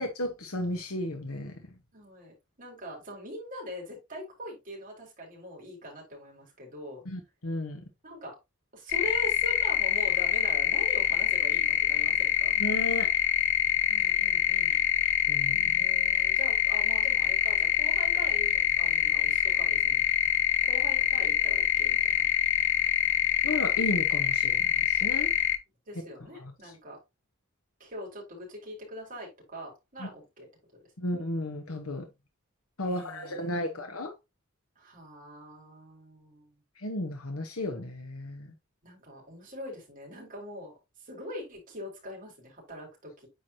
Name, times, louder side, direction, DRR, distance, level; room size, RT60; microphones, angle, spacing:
voice 1, 0.0-1.6 7.0-7.8 12.6-13.1 15.3-15.7 23.4-25.3 26.4-26.5 30.0-30.1 31.0-32.1 32.8-34.1 36.8-38.5, left 1 dB, 80° left, 1.2 m, -34 dB
voice 2, 1.9-7.0 8.0-8.4 8.7-12.5 13.9-14.8 15.8-20.0 20.6-22.3 25.9-27.0 27.8-30.5 31.0-31.1 32.9-33.9 34.8-36.6 38.8-43.3, equal, 40° right, 4.2 m, -43 dB
sound 1, 8.9-25.6, left 11 dB, 60° left, 0.7 m, -25 dB
9.4 x 4.7 x 2.8 m
head